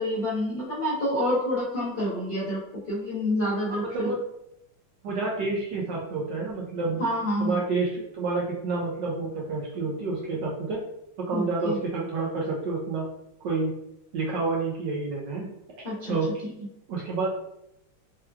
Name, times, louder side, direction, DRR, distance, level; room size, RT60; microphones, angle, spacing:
voice 1, 0.0-4.1 7.0-7.6 11.3-11.8 15.8-16.2, equal, 75° left, -9 dB, 0.5 m, -28 dB
voice 2, 5.0-7.0 7.4-10.8 11.2-13.1 13.4-13.7 14.1-15.5 16.0-16.3 16.9-17.3, right 3 dB, 75° right, -3 dB, 1.1 m, -29 dB
4.3 x 2.3 x 2.3 m, 0.80 s
omnidirectional pair, 2.4 m